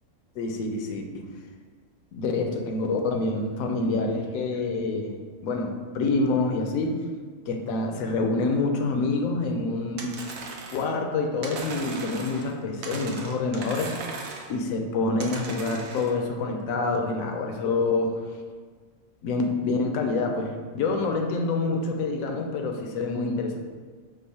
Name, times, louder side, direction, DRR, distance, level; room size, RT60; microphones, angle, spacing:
voice 1, 0.4-1.0 2.1-7.0 7.5-10.2 10.7-13.9 14.5-18.2 19.2-23.6, left 3 dB, 85° left, 3 dB, 1.0 m, -27 dB
sound 1, 10.0-10.9 11.4-12.5 12.8-14.6 15.2-16.1, right 4 dB, 85° right, 1.0 m, -38 dB
5.3 x 2.0 x 4.1 m, 1.5 s
omnidirectional pair, 1.4 m